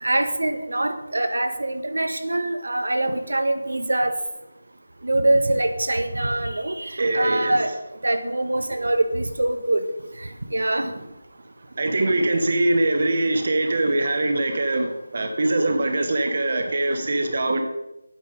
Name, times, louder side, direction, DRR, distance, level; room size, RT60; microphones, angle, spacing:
voice 1, 0.0-4.1 5.0-9.8 10.5-10.9, right 1 dB, 90° right, 1.2 m, -24 dB
voice 2, 7.0-7.7 10.8-11.0 11.8-17.6, right 2 dB, 30° right, 0.8 m, -23 dB
8.9 x 8.5 x 5.0 m
figure-of-eight pair, 180°, 0 cm